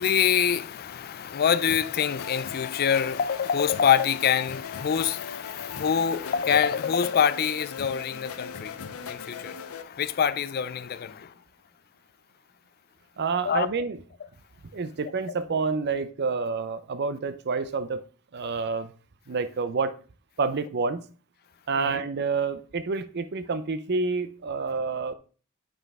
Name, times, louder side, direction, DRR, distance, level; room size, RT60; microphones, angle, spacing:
voice 1, 0.0-11.3 13.5-13.7 21.8-22.0, left 8 dB, 45° left, 0.4 m, -25 dB
sound 1, 1.7-9.8, left 6 dB, 85° left, 0.7 m, -39 dB
voice 2, 13.2-14.0 14.7-18.0 18.3-18.9 19.3-20.0 20.4-21.0 21.7-25.1, right 4 dB, 50° right, 0.5 m, -28 dB
7.5 x 5.6 x 3.6 m
head